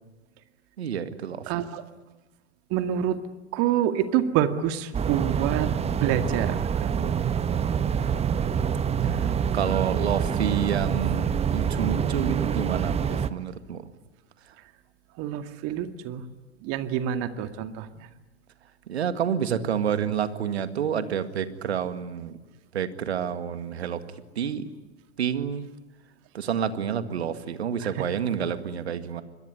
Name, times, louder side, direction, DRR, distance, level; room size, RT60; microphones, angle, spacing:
voice 1, 0.8-1.6 9.1-13.8 18.9-22.4 22.7-24.0 24.4-24.7 25.2-25.7 26.3-29.2, right 8 dB, 75° right, 11 dB, 2.1 m, -29 dB
voice 2, 1.5-1.8 2.7-3.2 3.5-5.7 6.0-7.2 15.2-16.2 16.6-17.9, right 10 dB, 45° right, 9 dB, 2.2 m, -27 dB
sound 1, 4.9-13.3, right 7 dB, 20° right, 1.1 m, -26 dB
26.5 x 21.5 x 9.9 m, 1.1 s
hypercardioid pair, 95°, 33 cm